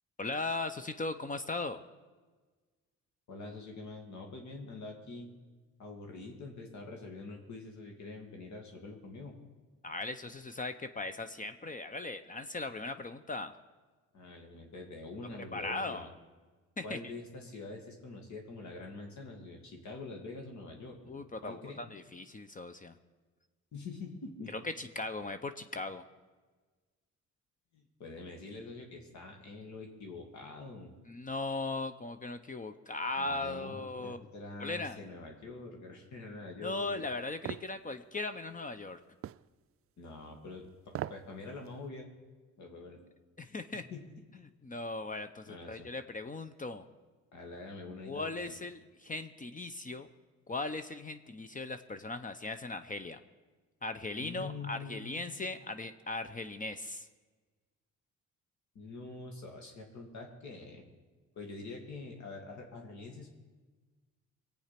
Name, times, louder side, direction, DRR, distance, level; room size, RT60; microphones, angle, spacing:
voice 1, 0.2-1.8 9.8-13.5 15.5-16.1 16.8-17.0 21.1-22.9 24.5-26.0 31.1-34.2 34.6-35.0 36.6-39.0 43.4-43.9 44.6-46.8 48.1-50.1 50.5-53.2 53.8-57.1, left 3 dB, 25° left, 10 dB, 0.8 m, -38 dB
voice 2, 3.3-5.3 5.8-9.4 14.1-16.1 16.8-21.0 21.4-21.8 23.7-24.5 27.7-30.9 33.2-37.1 40.0-42.1 42.6-43.0 43.9-44.0 45.5-45.9 47.3-48.3 54.2-55.3 58.7-60.8 61.4-63.3, left 3 dB, 70° left, 2 dB, 2.4 m, -45 dB
sound 1, 37.5-37.7 39.2-39.5 40.9-41.3 41.7-41.8, right 12 dB, 50° right, 0.4 m, -38 dB
21.5 x 8.7 x 5.9 m, 1.3 s
cardioid pair, 90°, 30 cm